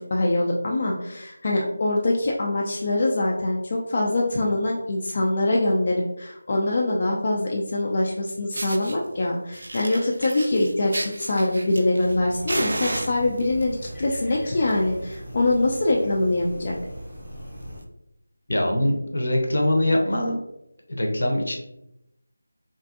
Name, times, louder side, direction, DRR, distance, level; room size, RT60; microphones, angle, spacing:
voice 1, 0.0-16.8, left 2 dB, 35° left, -2 dB, 0.3 m, -24 dB
Fire, 8.0-8.1 8.5-9.0 9.5-12.2 12.5-13.6 14.4-14.7 15.0-15.1 15.5-15.6 15.9-16.1 16.6-16.7 17.7-17.8, right 1 dB, 60° right, 0.4 m, -32 dB
sound 1, 12.0-17.8, equal, 5° left, 0.6 m, -39 dB
voice 2, 18.5-20.4 20.9-21.6, left 1 dB, 70° left, 1 dB, 0.6 m, -23 dB
2.5 x 2.4 x 2.4 m, 0.84 s
figure-of-eight pair, 170°, 0 cm